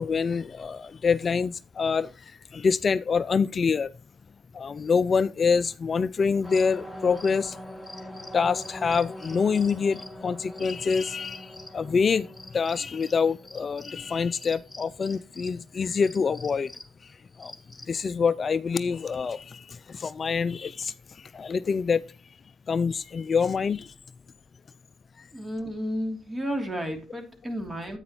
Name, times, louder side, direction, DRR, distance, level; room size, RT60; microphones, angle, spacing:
voice 1, 0.0-3.9 4.5-7.6 8.3-12.3 12.5-16.7 17.0-17.1 17.4-17.5 17.9-22.0 22.7-23.9 25.2-25.3, left 5 dB, 45° left, 0.3 m, -26 dB
sound 1, 6.4-18.0, left 1 dB, 5° left, 2.1 m, -43 dB
voice 2, 25.3-28.0, equal, 20° right, 2.9 m, -32 dB
9.6 x 8.7 x 2.9 m
supercardioid pair, 65°, 0 cm